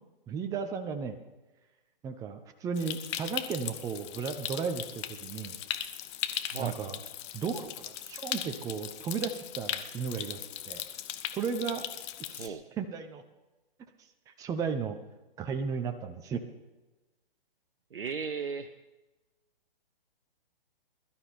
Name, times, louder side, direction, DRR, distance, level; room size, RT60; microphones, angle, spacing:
voice 1, 0.3-1.2 2.0-5.5 6.6-7.0 7.3-10.8 11.3-11.8 12.2-13.2 14.3-15.0 15.4-16.4, right 6 dB, 10° right, 7 dB, 0.8 m, -35 dB
Stream, 2.8-12.5, left 12 dB, 30° left, 0.9 m, -38 dB
voice 2, 17.9-18.7, right 6 dB, 75° right, 7 dB, 0.9 m, -35 dB
21.0 x 12.0 x 4.3 m, 1.1 s
hypercardioid pair, 135°, 29 cm